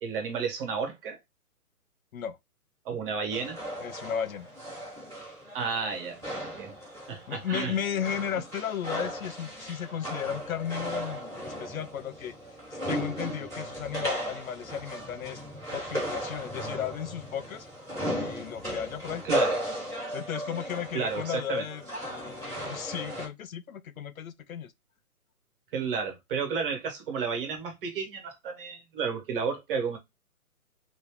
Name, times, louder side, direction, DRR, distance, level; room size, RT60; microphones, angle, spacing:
voice 1, 0.0-1.2 2.8-3.6 5.5-6.7 7.1-7.8 19.2-19.6 20.9-21.6 25.7-30.0, right 5 dB, 35° right, 1.5 m, -32 dB
sound 1, 3.3-23.3, equal, 5° right, 0.5 m, -36 dB
voice 2, 3.8-4.5 7.3-12.3 12.7-15.4 15.7-17.7 18.1-19.2 20.1-24.7, left 9 dB, 65° left, 0.5 m, -35 dB
3.0 x 2.6 x 3.2 m
hypercardioid pair, 150°, 46 cm